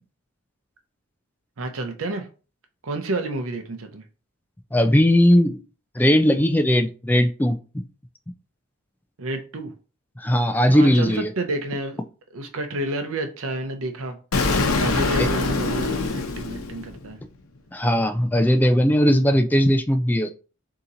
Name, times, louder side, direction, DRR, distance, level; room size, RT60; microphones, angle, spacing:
voice 1, 1.6-2.3 2.8-4.0 9.2-9.7 10.7-12.0 12.3-14.2 14.8-17.2, right 2 dB, 75° right, 6 dB, 0.7 m, -30 dB
voice 2, 4.7-5.6 6.0-7.6 10.2-11.3 15.2-15.3 17.7-20.3, equal, 10° left, 8 dB, 0.4 m, -18 dB
Explosion, 14.3-17.2, left 3 dB, 80° left, 0.8 m, -24 dB
4.0 x 2.8 x 3.8 m, 0.35 s
head